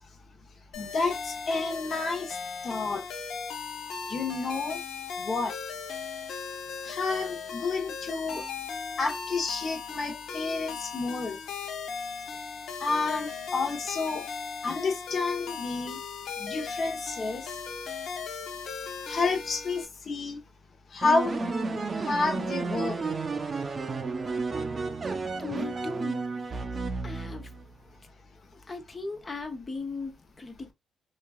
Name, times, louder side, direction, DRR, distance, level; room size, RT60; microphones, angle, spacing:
sound 1, 0.7-19.9, left 5 dB, 70° left, 0.6 m, -37 dB
voice 1, 0.7-2.4 2.6-3.1 4.1-4.8 5.2-5.5 6.8-8.4 9.0-11.4 12.8-14.3 14.6-16.0 16.4-17.6 19.0-20.4 20.9-21.6 21.9-23.1, left 3 dB, 50° left, 1.0 m, -30 dB
sound 2, 21.0-27.7, right 4 dB, 35° right, 0.5 m, -32 dB
voice 2, 25.4-26.3 27.0-27.5 28.5-30.7, left 4 dB, 30° left, 0.6 m, -38 dB
3.0 x 2.4 x 2.3 m
cardioid pair, 90°, 0 cm